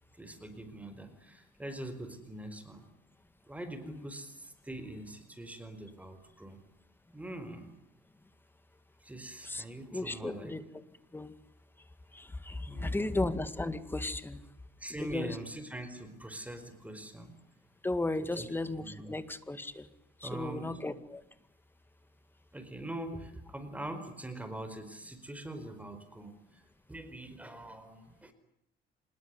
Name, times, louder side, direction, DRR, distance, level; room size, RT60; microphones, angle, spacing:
voice 1, 0.2-2.8 3.5-6.6 7.1-7.7 9.0-10.5 12.7-13.2 14.8-17.3 18.4-18.5 18.8-19.1 20.2-20.8 22.5-28.3, right 1 dB, 10° right, 10 dB, 4.7 m, -43 dB
voice 2, 9.9-10.6 11.1-11.3 12.1-14.4 14.9-15.4 17.8-19.9 20.2-21.2, left 2 dB, 10° left, 12 dB, 2.0 m, -35 dB
26.0 x 21.0 x 9.7 m, 0.74 s
cardioid pair, 110°, 17 cm